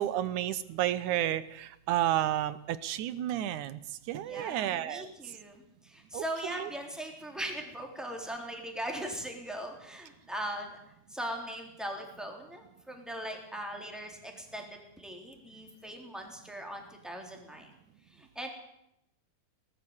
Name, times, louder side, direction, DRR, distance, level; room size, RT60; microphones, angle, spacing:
voice 1, 0.0-3.8 4.1-5.1 6.1-6.7, right 12 dB, 70° right, 15 dB, 2.1 m, -31 dB
voice 2, 4.2-10.8 11.1-17.7 18.1-18.5, right 1 dB, ahead, 2 dB, 3.4 m, -40 dB
19.5 x 13.5 x 9.8 m, 0.81 s
omnidirectional pair, 4.0 m